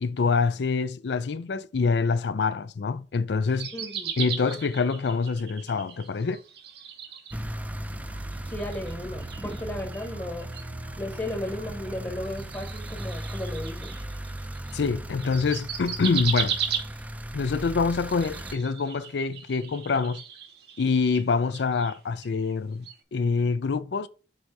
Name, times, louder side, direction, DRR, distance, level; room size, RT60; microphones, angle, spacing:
voice 1, 0.0-3.7 4.2-6.4 14.7-16.6 17.3-20.2 20.8-24.1, left 4 dB, 75° left, 0.4 m, -26 dB
sound 1, 3.5-7.7 8.0-14.9 15.2-17.3 17.9-22.6 22.8-23.0, right 8 dB, 65° right, 0.9 m, -37 dB
voice 2, 3.7-4.1 8.4-10.5 11.0-13.9, left 1 dB, 20° left, 1.0 m, -35 dB
sound 2, 7.3-18.5, right 1 dB, 10° right, 0.4 m, -37 dB
sound 3, 7.3-13.9, right 3 dB, 45° right, 0.9 m, -50 dB
7.7 x 2.7 x 4.7 m
head